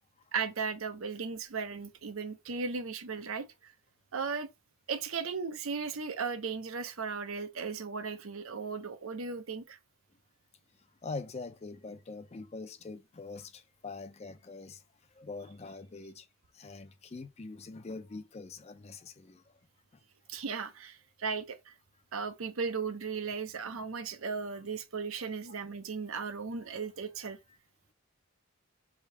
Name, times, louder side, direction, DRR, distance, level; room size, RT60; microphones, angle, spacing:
voice 1, 0.3-3.7 4.1-4.5 4.9-9.8 20.3-21.7 22.1-27.4, right 5 dB, 85° right, 0.7 m, -36 dB
voice 2, 11.0-14.8 15.1-16.3 16.5-19.4, left 3 dB, 30° left, 0.4 m, -43 dB
3.5 x 2.8 x 4.5 m
head